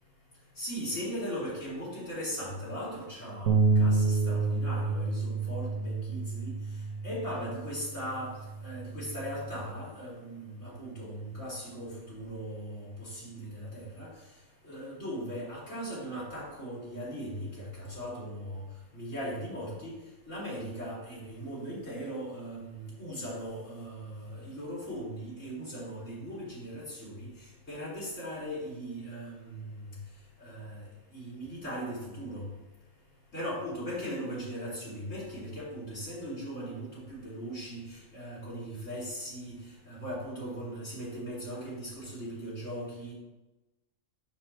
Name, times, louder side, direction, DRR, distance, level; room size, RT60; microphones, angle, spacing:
voice 1, 0.6-6.5 7.0-8.3 8.6-14.1 14.6-18.6 18.9-19.9 20.3-27.3 27.7-29.6 30.4-30.8 31.1-32.4 33.3-37.8 38.1-39.5 39.9-43.1, equal, 80° left, -9 dB, 3.3 m, -38 dB
sound 1, 3.5-9.7, right 4 dB, 85° right, 1.1 m, -29 dB
9.5 x 6.4 x 2.9 m, 1.1 s
omnidirectional pair, 1.3 m